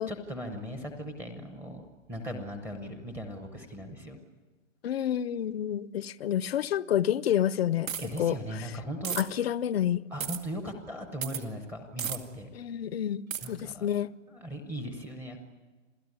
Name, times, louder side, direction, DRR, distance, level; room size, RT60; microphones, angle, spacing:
voice 1, 0.1-1.8 2.1-4.2 8.0-9.2 10.1-12.5 13.4-13.9 14.3-15.4, equal, 5° right, 0.8 m, -38 dB
voice 2, 4.8-7.9 8.2-8.4 9.2-10.0 12.6-14.1, left 10 dB, 50° left, 0.7 m, -29 dB
sound 1, 7.9-8.2 9.0-9.2 10.2-10.4 11.2-11.4 12.0-12.2 13.3-13.5, right 8 dB, 85° right, 2.2 m, -33 dB
27.5 x 16.5 x 9.6 m
hypercardioid pair, 165°, 39 cm